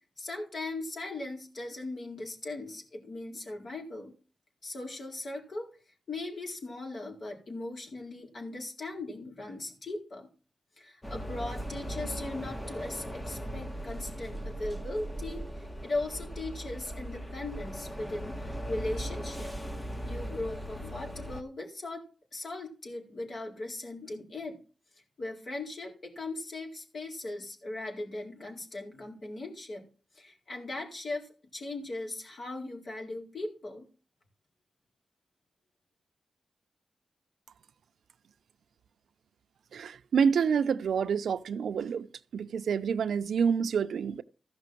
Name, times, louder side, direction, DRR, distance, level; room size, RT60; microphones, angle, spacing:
voice 1, 0.2-4.1 4.6-5.7 6.1-10.3 10.8-19.5 20.0-22.0 22.3-24.6 25.2-29.9 30.1-33.9, left 2 dB, 55° left, 4.3 m, -39 dB
sound 1, 11.0-21.4, equal, 15° left, 1.4 m, -38 dB
voice 2, 39.7-42.1 42.3-44.2, right 6 dB, 90° right, 0.6 m, -28 dB
15.0 x 6.0 x 6.1 m
wide cardioid pair, 125°, 0 cm